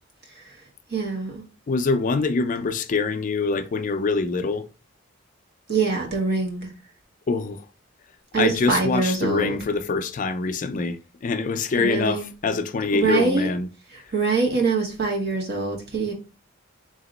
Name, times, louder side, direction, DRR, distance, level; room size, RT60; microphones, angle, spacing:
voice 1, 0.3-0.6 0.9-1.4 5.7-6.7 8.3-9.6 11.8-12.3 12.9-13.5 13.9-16.1, right 4 dB, 55° right, 1.0 m, -24 dB
voice 2, 1.7-4.7 7.3-7.6 8.4-13.7, left 4 dB, 40° left, 0.4 m, -24 dB
3.9 x 2.9 x 3.9 m
head